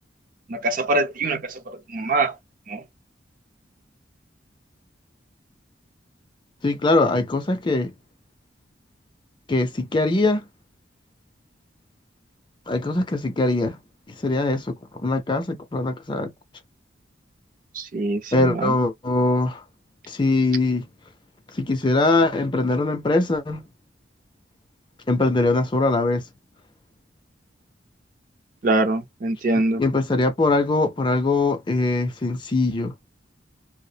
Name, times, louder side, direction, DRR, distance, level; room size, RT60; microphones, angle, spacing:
voice 1, 0.5-2.3 2.7-2.8 17.7-18.8 28.6-29.8, right 2 dB, 45° right, 0.5 m, -24 dB
voice 2, 6.6-7.9 9.5-10.4 12.7-13.8 14.2-16.3 18.3-19.6 20.1-20.9 21.6-23.6 25.1-26.2 29.8-32.9, left 2 dB, 25° left, 0.4 m, -22 dB
2.3 x 2.0 x 2.7 m
head